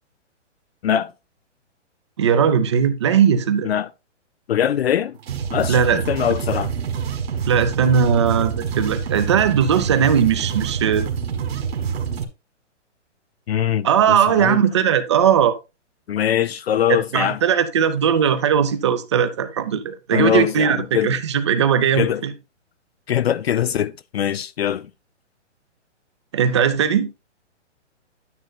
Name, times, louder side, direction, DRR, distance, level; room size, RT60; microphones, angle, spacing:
voice 1, 2.2-3.7 5.7-6.0 7.5-11.1 13.8-15.5 16.9-22.3 26.3-27.1, right 7 dB, 25° right, 0.6 m, -18 dB
voice 2, 4.5-5.2 5.5-6.7 13.5-14.6 16.1-17.4 20.1-21.1 22.0-22.2 23.1-24.9, left 10 dB, 60° left, 0.4 m, -22 dB
sound 1, 5.2-12.2, right 7 dB, 55° right, 1.7 m, -26 dB
9.6 x 9.3 x 2.3 m
hypercardioid pair, 165°, 36 cm